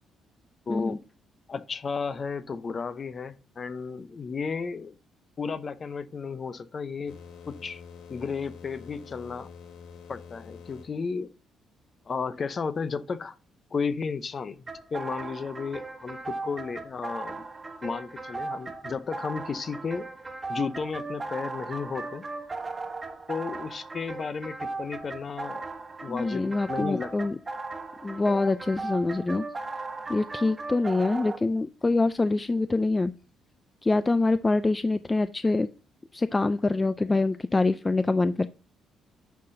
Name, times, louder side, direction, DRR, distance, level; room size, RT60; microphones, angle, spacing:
voice 1, 0.7-1.0 1.5-5.0 5.4-7.2 7.5-7.8 8.1-9.5 10.1-11.3 12.1-13.4 13.7-17.4 17.8-20.1 20.5-22.2 23.3-25.6 26.0-27.3, left 5 dB, 40° left, 0.7 m, -33 dB
sound 1, 7.1-10.9, left 6 dB, 80° left, 1.4 m, -46 dB
sound 2, 14.7-31.4, right 3 dB, 25° right, 1.2 m, -37 dB
voice 2, 26.1-27.4 28.0-29.4 30.1-33.1 33.8-35.7 36.1-38.5, left 3 dB, 20° left, 0.3 m, -25 dB
10.5 x 5.7 x 2.7 m
cardioid pair, 100°, 0 cm